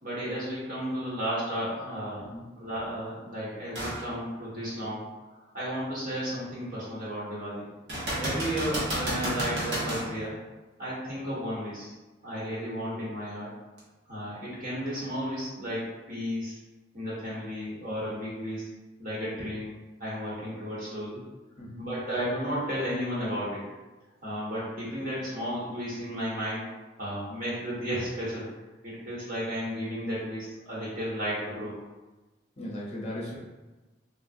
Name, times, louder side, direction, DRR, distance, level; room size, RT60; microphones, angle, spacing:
voice 1, 0.0-2.3 2.6-5.0 5.3-7.7 8.2-10.3 10.8-11.9 12.2-13.5 14.1-15.8 16.1-16.6 16.9-18.7 19.0-19.7 20.0-21.2 21.8-23.6 24.2-26.6 27.0-28.5 28.8-31.7, equal, 45° right, -8 dB, 1.3 m, -33 dB
sound 1, 3.7-4.0 4.6-4.7 7.9-10.1 13.8-13.9, right 1 dB, 75° right, 1.0 m, -31 dB
voice 2, 32.6-33.4, left 1 dB, 35° left, -5 dB, 0.6 m, -37 dB
3.4 x 2.4 x 2.5 m, 1.1 s
head